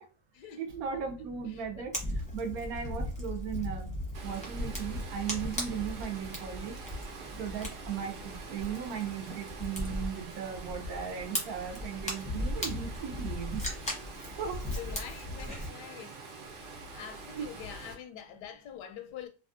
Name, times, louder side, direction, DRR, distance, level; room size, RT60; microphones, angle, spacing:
voice 1, 0.6-3.9 4.2-6.8 7.3-13.6 14.2-14.7 17.3-17.5, right 7 dB, 70° right, 1.1 m, -37 dB
sound 1, 0.7-7.8, right 4 dB, 65° left, 0.7 m, -50 dB
Fire, 1.9-15.7, left 1 dB, 10° left, 0.5 m, -38 dB
Water, 4.1-17.9, right 4 dB, 90° right, 1.4 m, -46 dB
voice 2, 14.8-16.2 16.9-19.3, left 9 dB, 90° left, 1.2 m, -45 dB
3.4 x 2.3 x 2.4 m
omnidirectional pair, 1.7 m